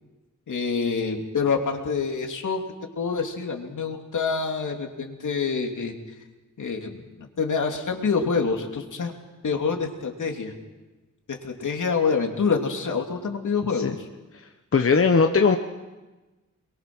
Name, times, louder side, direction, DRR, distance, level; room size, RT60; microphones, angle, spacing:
voice 1, 0.5-2.6 3.0-5.9 6.6-9.1 9.4-10.5 11.3-13.9, left 5 dB, 75° left, 3 dB, 3.0 m, -26 dB
voice 2, 14.7-15.6, left 5 dB, 45° left, 5 dB, 1.1 m, -19 dB
28.5 x 22.5 x 6.2 m, 1.2 s
wide cardioid pair, 135°, 31 cm